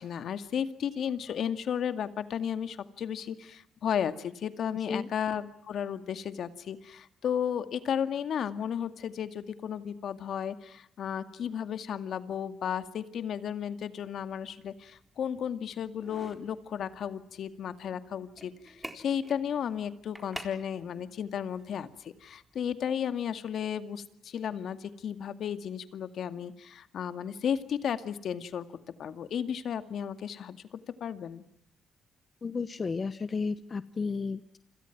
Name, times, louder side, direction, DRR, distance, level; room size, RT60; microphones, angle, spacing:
voice 1, 0.0-28.7 29.0-30.6 31.0-31.4, left 8 dB, 65° left, 11 dB, 2.1 m, -34 dB
sound 1, 14.0-22.8, right 1 dB, 5° right, 3.9 m, -50 dB
voice 2, 32.4-34.6, left 4 dB, 35° left, 13 dB, 1.1 m, -33 dB
29.5 x 26.5 x 6.1 m, 0.72 s
cardioid pair, 90°, 0 cm